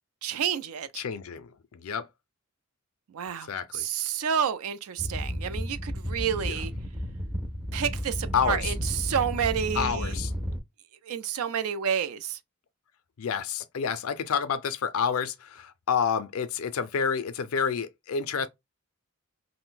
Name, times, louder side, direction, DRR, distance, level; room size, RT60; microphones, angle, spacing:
voice 1, 0.2-1.0 3.1-3.5 3.7-6.7 7.7-10.2 11.0-12.4, right 8 dB, 75° right, 0.4 m, -29 dB
voice 2, 1.0-2.1 3.5-3.8 6.3-6.6 8.3-8.7 9.8-10.3 13.2-18.5, left 6 dB, 70° left, 0.4 m, -29 dB
sound 1, 5.0-10.6, equal, 5° right, 0.4 m, -33 dB
2.5 x 2.1 x 3.8 m
head